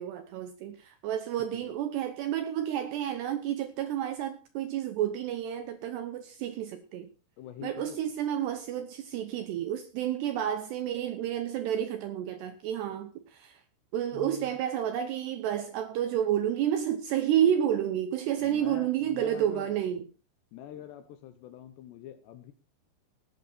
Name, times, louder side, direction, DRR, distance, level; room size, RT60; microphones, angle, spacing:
voice 1, 0.0-7.1 7.6-13.6 13.9-20.0, right 10 dB, 80° right, 2.5 m, -30 dB
voice 2, 7.4-8.0 14.1-14.6 18.4-19.8 20.5-22.5, left 10 dB, 75° left, 2.7 m, -45 dB
17.0 x 9.2 x 4.2 m
omnidirectional pair, 5.8 m